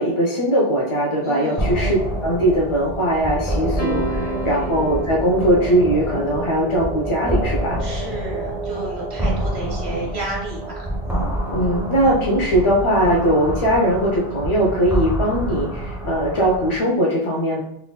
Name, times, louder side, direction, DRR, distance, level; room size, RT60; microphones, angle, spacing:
voice 1, 0.0-7.8 11.5-17.6, equal, 40° left, -2 dB, 0.4 m, -20 dB
voice 2, 1.2-1.8 4.3-4.7 7.8-11.4, right 1 dB, 75° right, -2 dB, 1.4 m, -32 dB
sound 1, 1.6-16.8, right 1 dB, ahead, 0.7 m, -27 dB
sound 2, 3.8-6.2, right 2 dB, 70° left, 1.3 m, -30 dB
3.7 x 3.4 x 2.2 m, 0.78 s
omnidirectional pair, 1.1 m